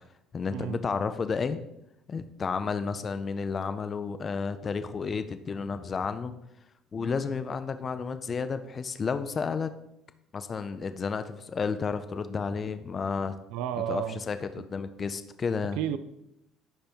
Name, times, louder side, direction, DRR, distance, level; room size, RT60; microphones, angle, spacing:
voice 1, 0.3-1.6 2.1-6.4 6.9-9.7 10.3-13.3 13.9-15.8, left 5 dB, 25° left, 0.4 m, -31 dB
voice 2, 13.5-14.2 15.8-16.0, right 11 dB, 85° right, 0.4 m, -31 dB
10.5 x 3.5 x 4.4 m
cardioid pair, 150°, 0 cm